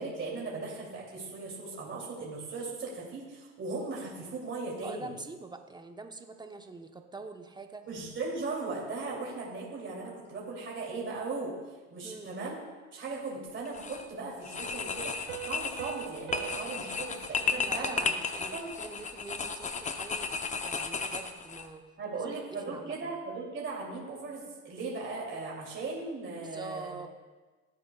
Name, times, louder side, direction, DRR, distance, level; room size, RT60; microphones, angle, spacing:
voice 1, 0.0-5.1 7.9-11.5 11.9-12.6 12.9-18.1 18.5-18.7 22.0-27.0, right 3 dB, 30° right, -4 dB, 2.8 m, -38 dB
voice 2, 4.8-7.9 12.0-12.4 17.6-20.3 20.6-21.8 22.1-23.1 26.4-27.1, right 3 dB, 10° right, 6 dB, 0.9 m, -45 dB
sound 1, 13.6-14.0 14.4-21.7, left 4 dB, 20° left, 0.7 m, -34 dB
Piano, 15.3-18.7, right 18 dB, 60° right, 0.7 m, -44 dB
16.0 x 7.8 x 2.3 m, 1.3 s
hypercardioid pair, 85°, 38 cm